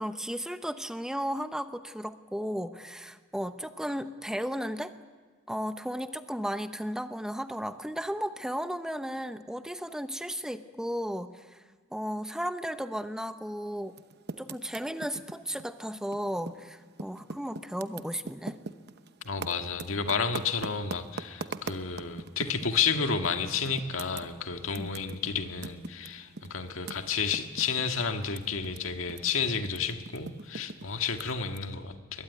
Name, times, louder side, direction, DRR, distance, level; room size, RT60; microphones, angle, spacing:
voice 1, 0.0-4.9 5.5-11.6 11.9-14.0 14.4-18.6 24.7-24.9, equal, 5° right, 9 dB, 0.7 m, -34 dB
Typing, 13.9-16.7 16.9-22.8 23.2-23.4 23.7-28.8 29.0-31.6, right 3 dB, 55° right, 0.9 m, -41 dB
voice 2, 19.2-32.2, left 5 dB, 80° left, 6 dB, 1.7 m, -31 dB
22.0 x 21.0 x 9.4 m, 1.4 s
head